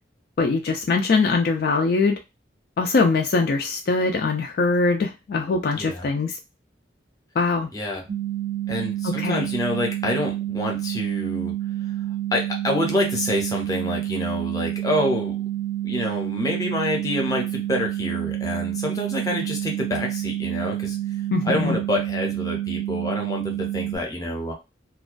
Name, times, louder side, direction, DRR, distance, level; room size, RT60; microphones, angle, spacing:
voice 1, 0.4-2.2 2.8-6.3 7.4-7.7 9.0-9.5 21.3-21.8, left 4 dB, 55° left, 3 dB, 0.3 m, -22 dB
voice 2, 5.7-6.1 7.7-8.0 8.7-11.5 12.3-15.4 15.8-21.0 21.4-24.5, left 1 dB, 20° left, 1 dB, 0.7 m, -27 dB
sound 1, 8.1-24.0, right 13 dB, 60° right, 0.4 m, -28 dB
2.3 x 2.2 x 2.4 m, 0.25 s
head